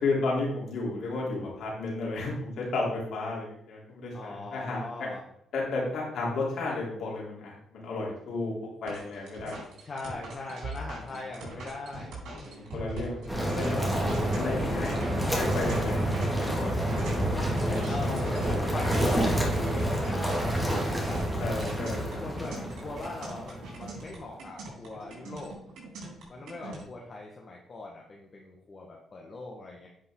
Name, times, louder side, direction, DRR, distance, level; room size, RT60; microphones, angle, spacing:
voice 1, 0.0-4.8 5.5-8.5 8.8-9.6 12.3-13.9 14.3-16.8 17.1-17.9 18.3-18.7 21.4-22.2 26.6-26.8, left 3 dB, 70° left, -4 dB, 3.3 m, -33 dB
voice 2, 4.1-5.2 9.8-12.1 13.7-14.1 17.9-18.4 18.7-21.3 22.2-25.6 26.3-29.9, left 2 dB, 40° left, -1 dB, 1.3 m, -40 dB
sound 1, 8.9-26.8, right 2 dB, 80° right, 3.5 m, -42 dB
sound 2, 13.3-24.1, equal, ahead, 2.1 m, -28 dB
10.0 x 5.2 x 3.7 m, 0.73 s
cardioid pair, 90°, 0 cm